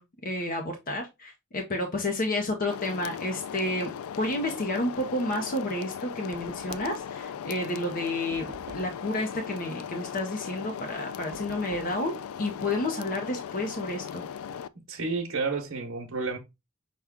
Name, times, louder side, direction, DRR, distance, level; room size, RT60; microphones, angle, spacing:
voice 1, 0.0-12.1 12.4-14.2, left 1 dB, 40° left, 0.6 m, -31 dB
sound 1, 2.7-14.7, left 8 dB, 80° left, 0.3 m, -38 dB
Knock, 6.3-7.2 8.3-9.1 11.3-12.0, right 4 dB, 40° right, 0.4 m, -46 dB
voice 2, 14.9-16.4, right 4 dB, 65° right, 1.0 m, -30 dB
5.8 x 2.3 x 3.5 m
head